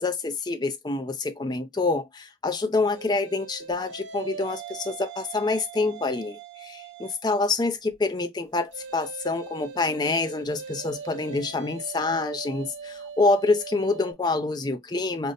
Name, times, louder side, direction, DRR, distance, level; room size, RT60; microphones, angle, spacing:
voice 1, 0.0-15.3, left 3 dB, 20° left, 0.4 m, -27 dB
sound 1, 2.9-7.3 8.7-14.1, right 6 dB, 85° right, 0.6 m, -40 dB
5.1 x 2.0 x 2.5 m
head